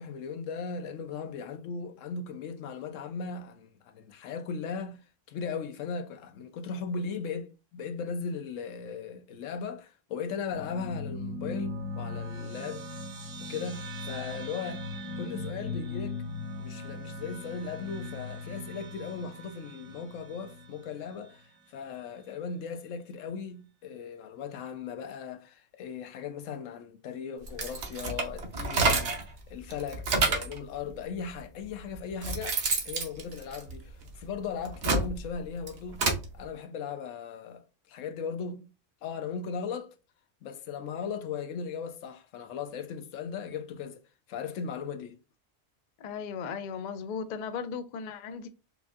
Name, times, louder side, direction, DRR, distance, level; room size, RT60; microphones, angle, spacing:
voice 1, 0.0-5.0 5.3-12.8 13.4-14.9 15.2-16.2 16.6-36.1 36.3-38.7 39.0-39.9 40.4-44.0 44.3-45.2, left 5 dB, 85° left, 1.0 m, -38 dB
sound 1, 10.5-21.3, left 2 dB, 80° right, 1.5 m, -39 dB
sound 2, 27.4-29.3 29.7-30.6 31.4-31.5 32.0-34.1 34.6-36.2, right 3 dB, 65° right, 1.1 m, -29 dB
voice 2, 46.0-48.5, left 6 dB, 60° left, 0.4 m, -36 dB
4.6 x 2.6 x 2.3 m
omnidirectional pair, 1.3 m